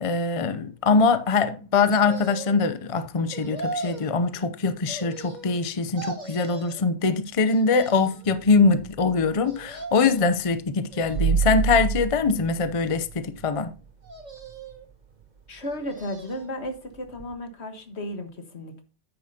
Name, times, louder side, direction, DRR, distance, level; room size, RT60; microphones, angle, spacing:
voice 1, 0.0-13.7, left 4 dB, 35° left, 0.6 m, -23 dB
sound 1, 1.9-2.7 3.3-4.1 4.9-5.7 6.0-6.8 7.4-8.3 9.4-10.4 10.9-11.6 12.2-13.0 14.0-14.9 15.6-16.5 16.9-17.0, right 3 dB, 40° right, 1.9 m, -39 dB
sound 2, 8.3-9.5 11.0-13.6 14.1-14.2 17.2-17.3, right 6 dB, 60° right, 0.3 m, -28 dB
voice 2, 15.5-18.8, left 1 dB, 75° left, 1.7 m, -34 dB
9.8 x 8.5 x 2.8 m
omnidirectional pair, 1.1 m